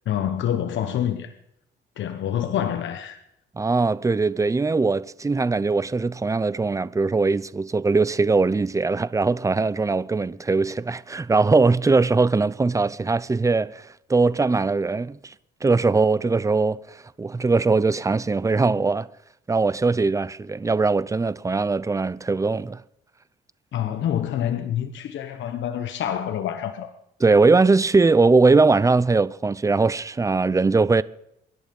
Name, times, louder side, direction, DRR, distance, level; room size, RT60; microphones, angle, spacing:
voice 1, 0.1-1.3 2.0-3.2 23.7-26.9, left 10 dB, 70° left, 1.1 m, -27 dB
voice 2, 3.6-13.8 14.1-15.3 15.6-16.8 17.2-19.1 19.5-22.8 27.2-31.0, right 3 dB, 15° right, 0.6 m, -20 dB
24.5 x 11.0 x 5.4 m
cardioid pair, 90°, 20 cm